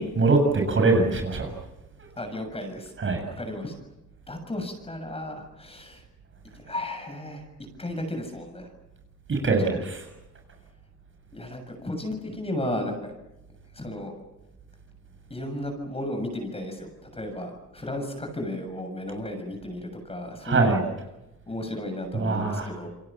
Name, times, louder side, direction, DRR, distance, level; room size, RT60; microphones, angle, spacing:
voice 1, 0.0-1.5 3.0-3.2 9.3-10.0 20.4-20.8 22.1-22.7, right 3 dB, 40° right, 4 dB, 7.3 m, -23 dB
voice 2, 2.2-2.9 3.2-3.7 4.3-6.0 6.5-7.4 7.8-8.7 9.4-9.8 11.3-13.1 13.7-14.1 15.3-20.9 21.5-22.9, left 1 dB, 20° left, 5 dB, 7.1 m, -34 dB
28.5 x 23.5 x 7.5 m, 0.96 s
cardioid pair, 90°, 30 cm